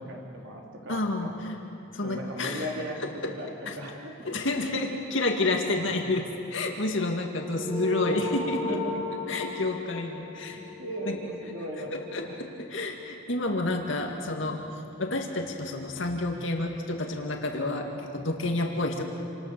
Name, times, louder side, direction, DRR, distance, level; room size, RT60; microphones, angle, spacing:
voice 1, 0.0-1.3 2.0-3.0 3.3-4.1 7.6-7.7 8.1-8.3 8.6-9.0 10.5-12.4, equal, 65° right, -1 dB, 4.2 m, -37 dB
voice 2, 0.9-1.6 1.9-2.7 3.2-3.3 3.7-3.8 4.2-8.8 9.3-10.6 11.1-11.2 11.9-14.6 15.0-19.0, left 2 dB, 65° left, 2 dB, 2.1 m, -29 dB
sound 1, 7.5-12.4, left 2 dB, 5° right, 7.1 m, -35 dB
28.0 x 26.5 x 6.8 m, 2.7 s
head